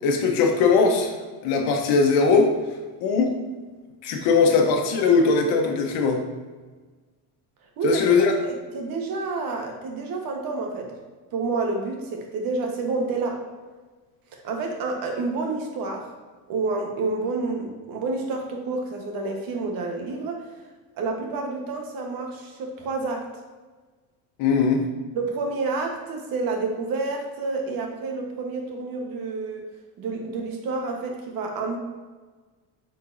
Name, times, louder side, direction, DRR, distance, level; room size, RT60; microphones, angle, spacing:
voice 1, 0.0-2.5 3.0-3.3 4.0-6.2 7.8-8.3 24.4-24.8, left 4 dB, 75° left, 3 dB, 1.2 m, -20 dB
voice 2, 7.8-11.0 11.3-13.4 14.3-16.1 16.5-20.5 21.0-23.3 25.1-29.6 30.0-31.8, right 3 dB, 60° right, 2 dB, 1.3 m, -29 dB
7.8 x 4.5 x 2.7 m, 1.3 s
cardioid pair, 110°, 39 cm